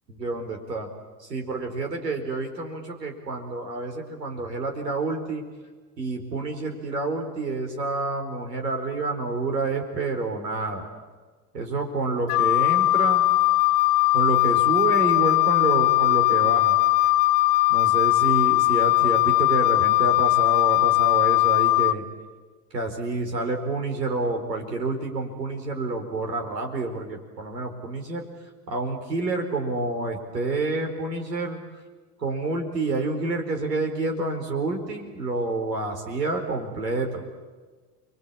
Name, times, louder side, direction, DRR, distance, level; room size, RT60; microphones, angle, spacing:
voice 1, 0.1-0.9 1.2-5.4 6.0-10.9 11.5-13.3 14.1-16.8 17.7-22.0 22.7-31.6 32.2-37.2, right 3 dB, 90° right, 3 dB, 4.7 m, -28 dB
Wind instrument woodwind instrument, 12.3-21.9, left 19 dB, 65° left, 0.9 m, -20 dB
29.5 x 23.0 x 8.7 m, 1.4 s
hypercardioid pair, 80°, 48 cm